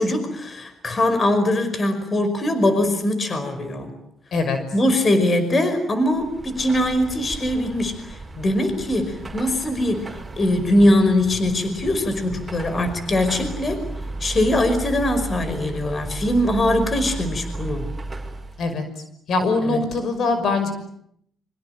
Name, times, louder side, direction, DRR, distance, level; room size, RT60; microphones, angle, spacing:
voice 1, 0.0-3.9 4.7-13.8 14.2-17.9 19.6-19.8, left 1 dB, 35° left, 10 dB, 5.3 m, -21 dB
Car passing by / Traffic noise roadway noise / Engine, 6.0-18.7, right 2 dB, 20° right, 6.0 m, -34 dB
voice 2, 19.3-20.7, left 3 dB, 65° left, 9 dB, 5.9 m, -22 dB
26.0 x 24.5 x 8.9 m, 0.72 s
cardioid pair, 90°, 0 cm